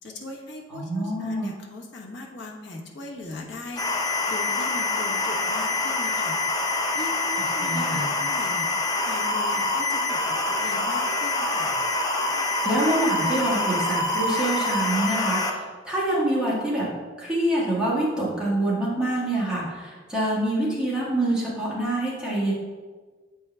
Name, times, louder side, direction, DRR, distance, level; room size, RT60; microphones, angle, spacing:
voice 1, 0.0-3.8 4.3-6.4 6.9-8.7 9.1-10.2 10.5-11.7, left 2 dB, 65° left, -2 dB, 1.1 m, -39 dB
voice 2, 0.7-1.5 7.6-8.0 12.6-16.9 17.2-22.5, right 1 dB, 5° right, -7 dB, 1.6 m, -26 dB
sound 1, 3.8-15.5, left 2 dB, 20° left, 0.7 m, -25 dB
8.1 x 4.6 x 3.3 m, 1.4 s
head